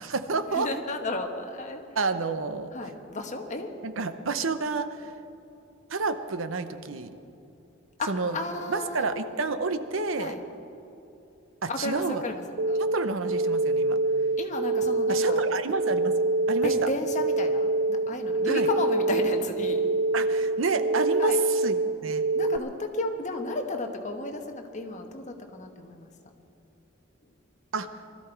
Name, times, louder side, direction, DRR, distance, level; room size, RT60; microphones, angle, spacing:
voice 1, 0.0-0.7 2.0-2.7 3.8-5.1 5.9-7.1 8.1-8.4 8.7-10.4 11.6-12.2 12.8-14.0 15.1-16.2 16.5-16.9 18.4-18.7 20.1-22.2 27.7-27.9, right 4 dB, 80° right, 10 dB, 0.8 m, -29 dB
voice 2, 0.5-1.8 2.7-3.7 8.0-9.3 10.2-10.4 11.7-12.4 12.7-12.8 14.4-15.4 16.6-19.8 21.2-21.4 22.3-26.1, left 2 dB, 40° left, 4 dB, 1.3 m, -33 dB
sound 1, 12.6-22.6, right 2 dB, 55° right, 0.4 m, -26 dB
20.0 x 13.5 x 4.5 m, 2.9 s
head